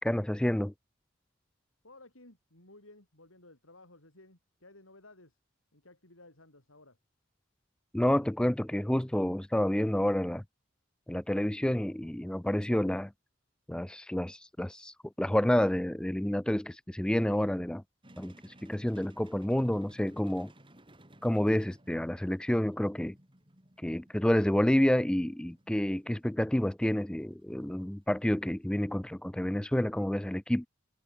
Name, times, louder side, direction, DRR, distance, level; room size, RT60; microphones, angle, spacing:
voice 1, 0.0-0.7 7.9-10.4 11.1-13.1 13.7-17.8 18.2-20.5 21.2-23.2 23.8-30.7, left 1 dB, 5° left, 0.3 m, -29 dB
voice 2, 1.8-5.4 5.7-7.0, left 2 dB, 90° left, 7.5 m, -56 dB
sound 1, 18.0-28.8, right 1 dB, 25° right, 5.3 m, -59 dB
head